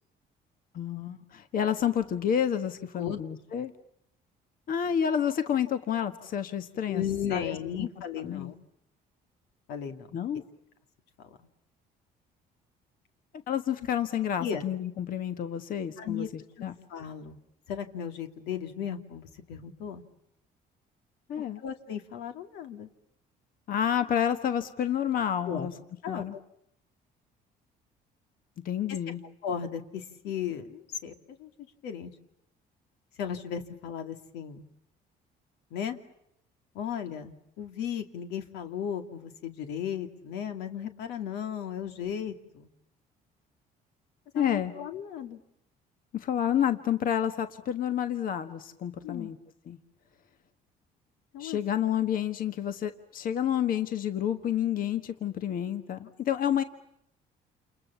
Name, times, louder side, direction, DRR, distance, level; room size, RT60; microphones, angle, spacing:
voice 1, 0.7-3.7 4.7-7.0 7.3-7.9 8.1-8.5 10.1-10.4 13.5-16.7 21.3-21.6 23.7-25.7 26.1-26.4 28.6-29.2 44.3-44.7 46.1-49.4 49.7-49.8 51.4-56.6, left 9 dB, 55° left, 9 dB, 1.5 m, -29 dB
voice 2, 6.9-8.5 9.7-10.1 11.3-11.4 14.4-14.6 16.0-16.3 16.6-16.7 16.9-17.4 17.7-20.0 21.6-22.9 25.5-25.7 26.0-26.4 29.4-32.1 33.2-34.6 35.7-36.0 36.7-42.7 44.3-45.4 49.0-49.3 51.3-51.6, left 8 dB, 90° left, 6 dB, 2.5 m, -35 dB
29.0 x 28.5 x 7.1 m, 0.77 s
cardioid pair, 110°, 17 cm